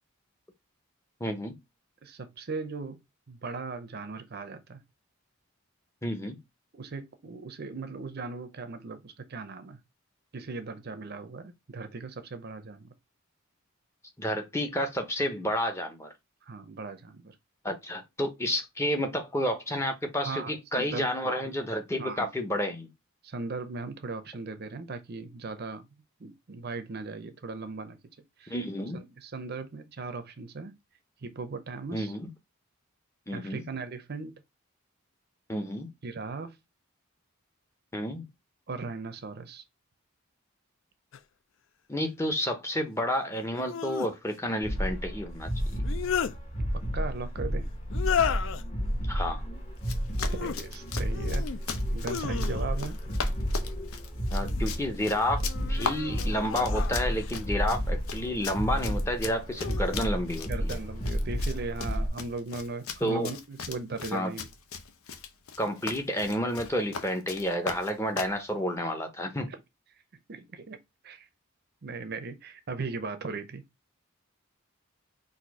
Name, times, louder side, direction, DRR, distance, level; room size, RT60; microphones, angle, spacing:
voice 1, 1.2-1.5 6.0-6.4 14.2-16.1 17.6-22.9 28.5-29.0 31.9-32.3 33.3-33.6 35.5-35.9 37.9-38.3 41.9-45.8 49.1-49.4 54.3-60.7 63.0-63.3 64.1-64.3 65.6-69.5, equal, 10° left, 0.7 m, -30 dB
voice 2, 2.0-4.8 6.7-9.8 10.3-12.9 16.4-17.4 20.2-21.1 22.0-22.3 23.2-25.9 26.2-28.0 28.4-28.5 28.9-30.7 31.2-32.1 33.3-34.4 36.0-36.6 38.7-39.6 46.6-46.7 46.9-47.7 50.3-51.5 51.9-53.2 60.5-64.5 69.5-69.6 70.3-70.8 71.0-71.3 71.8-73.6, right 3 dB, 45° right, 0.6 m, -38 dB
sound 1, 41.1-41.2 43.5-44.1 45.6-46.4 47.9-48.6 50.1-50.6 51.1-51.6 52.0-52.9 54.1-54.8 55.4-57.4 58.5-59.0 59.6-60.1, left 7 dB, 55° left, 0.3 m, -34 dB
sound 2, 44.6-62.1, equal, 30° left, 1.0 m, -31 dB
Run, 49.8-68.4, left 5 dB, 75° left, 0.7 m, -39 dB
4.1 x 2.6 x 4.7 m
head